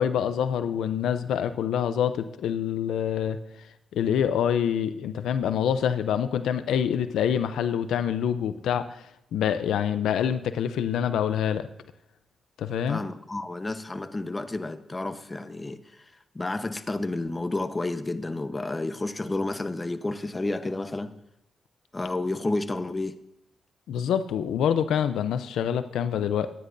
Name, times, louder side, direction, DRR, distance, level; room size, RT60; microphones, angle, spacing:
voice 1, 0.0-3.4 3.9-11.7 12.6-13.0 23.9-26.5, left 8 dB, 90° left, 11 dB, 0.5 m, -26 dB
voice 2, 12.9-16.0 16.3-21.1 21.9-23.1, left 2 dB, 25° left, 10 dB, 1.0 m, -31 dB
24.0 x 10.0 x 2.6 m, 0.82 s
cardioid pair, 70°, 0 cm